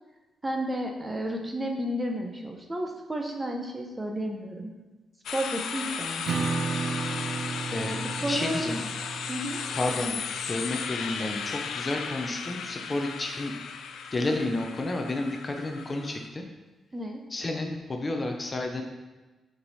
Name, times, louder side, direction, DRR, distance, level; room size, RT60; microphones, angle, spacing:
voice 1, 0.4-4.7 5.3-6.5 8.2-8.8 9.3-9.6 16.9-17.2, right 1 dB, 15° right, 3 dB, 0.7 m, -32 dB
sound 1, 5.3-16.3, left 6 dB, 80° left, 0.4 m, -35 dB
Acoustic guitar / Strum, 6.2-11.7, right 4 dB, 75° right, 0.5 m, -34 dB
voice 2, 7.7-8.8 9.7-10.2 10.5-13.5 14.1-16.4 17.3-18.8, left 2 dB, 25° left, 3 dB, 0.6 m, -31 dB
6.4 x 4.7 x 4.1 m, 1.2 s
wide cardioid pair, 150°, 0 cm